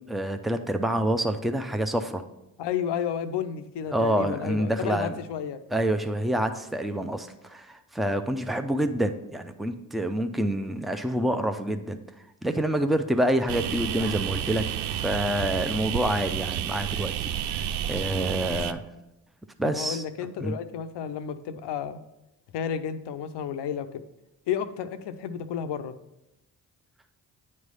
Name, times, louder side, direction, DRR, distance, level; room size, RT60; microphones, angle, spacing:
voice 1, 0.1-2.2 3.9-5.1 5.7-12.0 12.4-14.7 15.0-17.1 17.9-18.8 19.6-20.0 20.4-20.6, right 1 dB, ahead, 8 dB, 0.6 m, -27 dB
voice 2, 2.6-5.6 19.6-22.0 22.5-24.0 24.5-25.9, left 8 dB, 70° left, 10 dB, 0.6 m, -32 dB
sound 1, 13.5-18.7, right 10 dB, 65° right, 0.5 m, -30 dB
9.2 x 3.2 x 5.4 m, 0.91 s
supercardioid pair, 50°, 43 cm